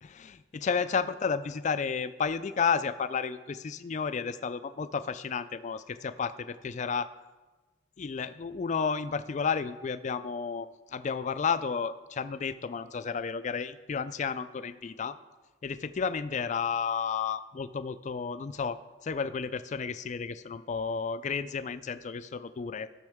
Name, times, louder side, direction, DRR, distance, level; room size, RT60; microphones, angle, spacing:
voice 1, 0.0-7.1 8.0-15.2 15.6-22.9, left 6 dB, 40° left, 12 dB, 0.4 m, -32 dB
14.5 x 6.4 x 3.6 m, 1.2 s
head